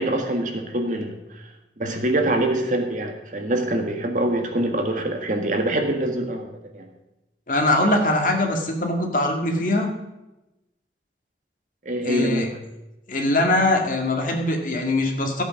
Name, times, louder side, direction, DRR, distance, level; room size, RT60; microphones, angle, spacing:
voice 1, 0.0-1.5 1.8-6.9 11.8-12.6, right 1 dB, 45° right, 4 dB, 1.7 m, -25 dB
voice 2, 7.5-9.9 12.0-12.5 13.1-15.4, left 1 dB, 45° left, 2 dB, 2.1 m, -22 dB
14.0 x 8.3 x 6.3 m, 0.98 s
head